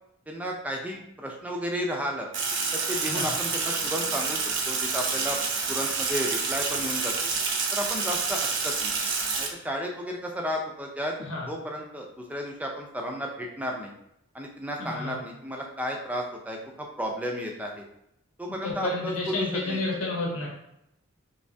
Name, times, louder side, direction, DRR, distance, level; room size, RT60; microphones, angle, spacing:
voice 1, 0.3-2.3 2.7-4.4 4.7-5.4 5.7-7.1 7.7-8.9 9.4-11.2 11.5-13.9 14.3-17.8 18.4-19.8, equal, 5° right, 1 dB, 0.4 m, -33 dB
Sink (filling or washing), 2.3-9.5, right 4 dB, 60° right, 0.5 m, -28 dB
voice 2, 14.8-15.1 18.5-20.5, left 2 dB, 85° left, -2 dB, 1.0 m, -30 dB
3.3 x 3.0 x 2.7 m, 0.80 s
head